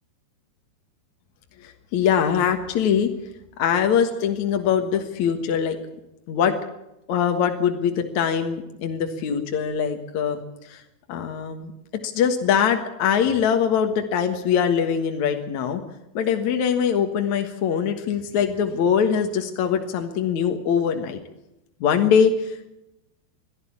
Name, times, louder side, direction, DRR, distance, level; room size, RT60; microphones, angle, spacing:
voice 1, 1.6-3.1 3.6-5.8 6.3-6.5 7.1-10.4 10.7-10.8 11.1-15.8 16.1-21.2 21.8-22.7, left 7 dB, 60° left, 5 dB, 2.2 m, -22 dB
22.5 x 13.5 x 8.6 m, 0.88 s
omnidirectional pair, 5.0 m